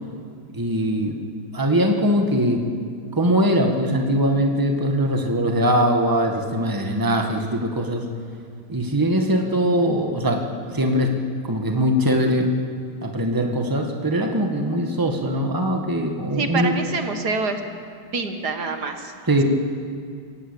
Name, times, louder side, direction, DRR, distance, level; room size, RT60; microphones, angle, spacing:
voice 1, 0.5-1.2 1.5-2.6 3.1-8.1 8.7-10.4 10.7-11.1 11.4-12.5 13.0-16.7 19.3-19.4, equal, 10° right, 3 dB, 1.7 m, -21 dB
voice 2, 16.4-17.6 18.1-19.1, right 4 dB, 70° right, 6 dB, 2.1 m, -26 dB
26.5 x 15.0 x 8.4 m, 2.2 s
omnidirectional pair, 1.8 m